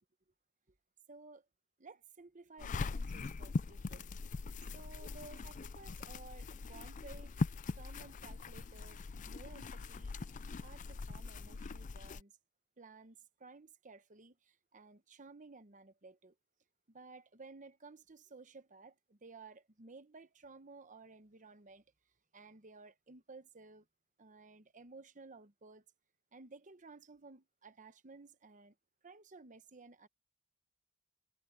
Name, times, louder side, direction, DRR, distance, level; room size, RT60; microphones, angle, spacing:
voice 1, 1.1-1.5 1.8-4.1 4.6-7.3 7.8-10.1 10.5-12.4 12.8-16.3 16.9-21.8 22.3-23.9 24.2-25.8 26.3-28.7 29.0-30.1, right 3 dB, 35° right, 1.0 m, -56 dB
sound 1, 2.6-12.2, left 3 dB, 35° left, 0.4 m, -41 dB
head